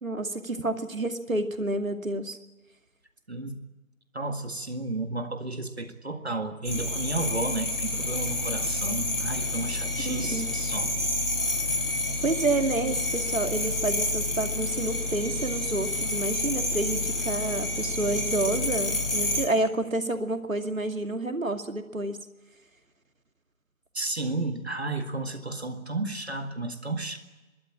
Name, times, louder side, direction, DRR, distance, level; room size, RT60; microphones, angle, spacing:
voice 1, 0.0-2.4 10.1-10.5 12.2-22.3, right 2 dB, 70° right, 6 dB, 2.5 m, -29 dB
voice 2, 3.3-3.6 4.1-10.9 23.9-27.2, right 2 dB, 50° right, 6 dB, 2.0 m, -32 dB
sound 1, 6.6-19.5, left 2 dB, 65° left, 4.6 m, -29 dB
29.5 x 13.0 x 8.6 m, 1.2 s
figure-of-eight pair, 180°, 42 cm